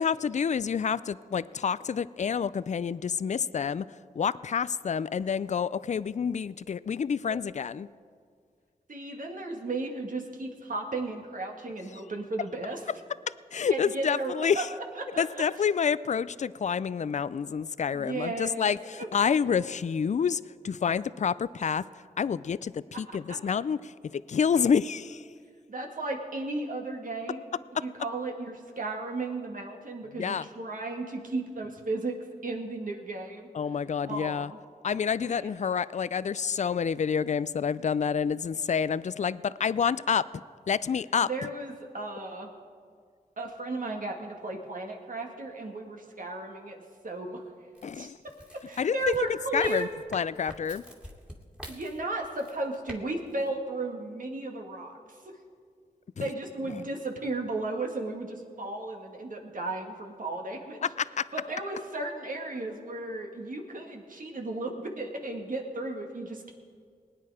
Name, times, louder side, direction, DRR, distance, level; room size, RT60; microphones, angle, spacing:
voice 1, 0.0-3.9 4.2-7.9 13.5-14.7 15.2-21.8 22.2-25.2 30.2-30.4 33.5-34.5 34.8-41.3 47.8-48.2 48.8-49.3 49.5-50.8 56.2-56.3 61.0-61.3, left 7 dB, 50° left, 18 dB, 0.4 m, -28 dB
voice 2, 8.9-12.8 13.7-14.6 14.9-15.4 17.9-19.1 23.1-23.2 25.7-27.5 27.7-32.2 32.4-33.5 34.0-34.6 35.2-35.7 41.2-42.5 43.4-46.8 47.0-47.4 47.9-48.1 48.7-49.9 51.7-55.4 56.2-60.8 61.3-66.6, right 2 dB, 60° right, 2 dB, 2.0 m, -35 dB
sound 1, 47.7-53.0 53.3-53.5, equal, 5° right, 2.5 m, -46 dB
20.0 x 9.2 x 4.9 m, 2.1 s
cardioid pair, 45°, 16 cm